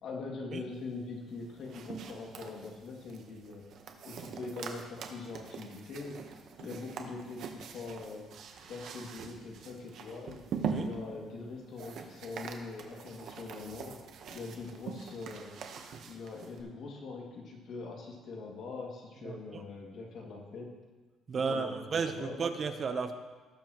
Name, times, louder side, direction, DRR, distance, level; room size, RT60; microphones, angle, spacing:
voice 1, 0.0-3.6 4.0-6.2 6.6-8.3 8.6-10.4 10.8-13.9 14.3-15.5 16.0-20.7 21.3-22.4, left 3 dB, 55° left, -1 dB, 2.2 m, -43 dB
sound 1, 1.3-16.6, right 6 dB, 60° right, 1.0 m, -43 dB
voice 2, 21.3-23.1, right 5 dB, 35° right, 7 dB, 0.8 m, -33 dB
18.5 x 7.0 x 3.0 m, 1.3 s
cardioid pair, 140°, 0 cm